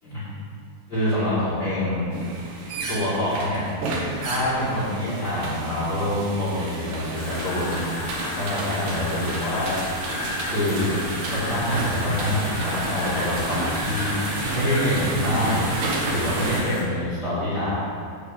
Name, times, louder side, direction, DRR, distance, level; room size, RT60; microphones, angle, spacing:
voice 1, 0.9-2.0 2.9-3.6 4.1-8.1 8.4-9.7 10.4-10.9 11.3-15.6 16.1-17.8, left 1 dB, 35° left, -11 dB, 2.4 m, -26 dB
sound 1, 2.1-16.6, right 2 dB, 65° right, 2.2 m, -31 dB
sound 2, 7.2-16.8, left 2 dB, 70° left, 1.3 m, -33 dB
8.2 x 4.4 x 7.2 m, 2.2 s
omnidirectional pair, 4.1 m